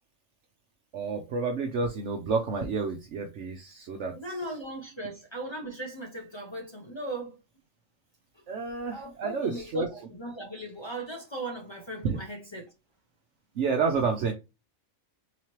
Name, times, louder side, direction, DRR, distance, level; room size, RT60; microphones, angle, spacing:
voice 1, 0.9-4.2 8.5-9.9 12.0-12.2 13.6-14.3, right 4 dB, 65° right, 0.9 m, -29 dB
voice 2, 4.1-7.4 8.3-8.4 8.9-12.7, right 1 dB, 25° left, 0.6 m, -38 dB
3.9 x 3.1 x 2.9 m
omnidirectional pair, 1.4 m